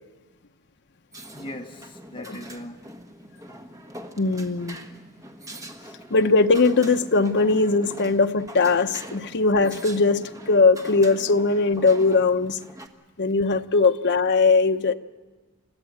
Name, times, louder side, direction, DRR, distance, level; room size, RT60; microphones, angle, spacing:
sound 1, 1.1-12.9, right 1 dB, 15° right, 1.4 m, -42 dB
voice 1, 1.3-2.9 14.9-15.0, left 1 dB, 25° left, 1.6 m, -39 dB
voice 2, 4.2-4.8 6.1-12.6 13.2-14.9, left 3 dB, 55° left, 0.8 m, -20 dB
29.0 x 13.0 x 8.6 m
head